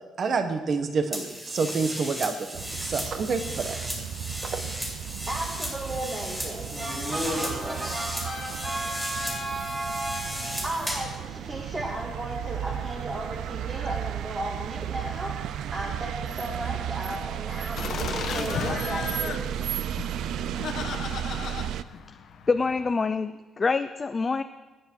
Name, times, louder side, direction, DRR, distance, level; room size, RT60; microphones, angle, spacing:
voice 1, 0.2-3.9 4.4-4.6, right 4 dB, 45° right, 8 dB, 1.1 m, -28 dB
sound 1, 1.1-11.1, equal, 10° right, 3.5 m, -35 dB
sound 2, 2.5-21.8, right 11 dB, 75° right, 0.5 m, -34 dB
voice 2, 5.3-19.5, right 1 dB, 25° right, -1 dB, 1.9 m, -34 dB
sound 3, 17.8-22.9, left 7 dB, 65° left, 1.2 m, -35 dB
voice 3, 22.5-24.4, left 4 dB, 25° left, 10 dB, 0.4 m, -26 dB
21.0 x 9.4 x 4.6 m, 1.2 s
cardioid pair, 130°, 0 cm